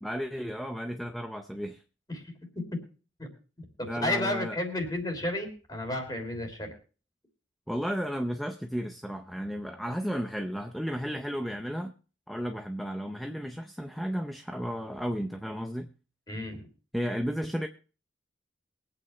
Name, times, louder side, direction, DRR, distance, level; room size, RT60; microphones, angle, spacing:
voice 1, 0.0-1.8 3.8-4.6 7.7-11.9 12.3-15.9 16.9-17.7, equal, ahead, 5 dB, 0.6 m, -33 dB
voice 2, 3.6-6.7 16.3-16.6, left 1 dB, 20° left, 5 dB, 3.2 m, -32 dB
22.5 x 8.8 x 3.2 m, 0.36 s
head